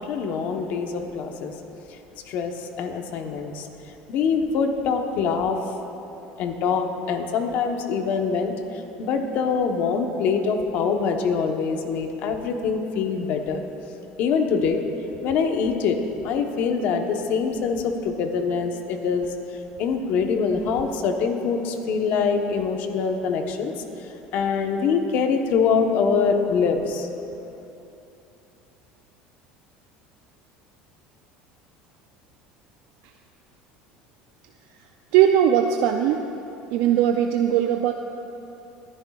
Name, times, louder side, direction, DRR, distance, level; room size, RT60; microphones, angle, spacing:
voice 1, 0.0-1.5 1.9-2.0 2.3-3.7 4.1-5.6 6.4-13.7 14.2-14.8 15.2-16.0 16.2-23.7 24.0-27.1, left 5 dB, 55° left, 4 dB, 1.1 m, -24 dB
voice 2, 35.1-36.3 36.7-37.9, right 10 dB, 70° right, 5 dB, 0.4 m, -19 dB
22.0 x 10.0 x 2.4 m, 2.9 s
cardioid pair, 130°, 3 cm